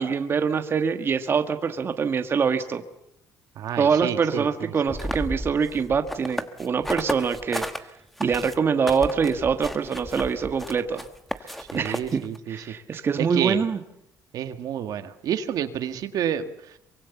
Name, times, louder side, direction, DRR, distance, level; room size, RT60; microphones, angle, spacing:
voice 1, 0.0-2.8 3.8-7.7 8.2-11.1 11.5-12.2 12.5-13.8, right 6 dB, 35° right, 8 dB, 1.5 m, -24 dB
voice 2, 3.6-4.5 4.9-5.0 11.6-12.8 13.2-13.6 14.3-16.8, right 9 dB, 65° right, 9 dB, 1.7 m, -29 dB
sound 1, 4.9-7.8 8.2-12.4, equal, ahead, 1.3 m, -33 dB
24.0 x 23.5 x 7.1 m, 0.76 s
cardioid pair, 135°, 7 cm